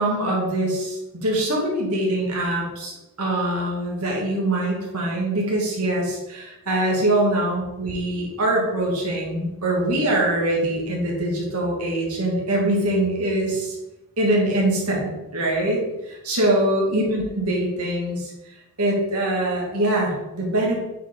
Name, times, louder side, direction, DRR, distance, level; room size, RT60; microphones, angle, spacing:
voice 1, 0.0-13.8 14.2-18.3 18.8-20.8, right 1 dB, 85° right, -2 dB, 2.3 m, -23 dB
9.0 x 4.6 x 4.0 m, 0.96 s
head